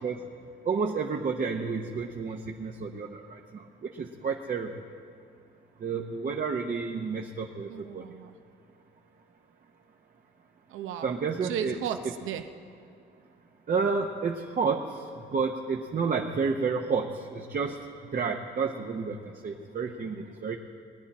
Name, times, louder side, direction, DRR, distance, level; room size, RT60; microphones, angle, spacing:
voice 1, 0.7-4.7 5.8-8.0 11.0-11.8 13.7-14.9 15.3-17.8 18.1-19.2 19.4-20.6, right 5 dB, 45° right, 1 dB, 0.8 m, -30 dB
voice 2, 7.7-8.3 10.7-11.1 11.4-12.4, right 9 dB, 85° right, 8 dB, 0.8 m, -35 dB
19.5 x 10.0 x 4.2 m, 2.5 s
cardioid pair, 90°, 20 cm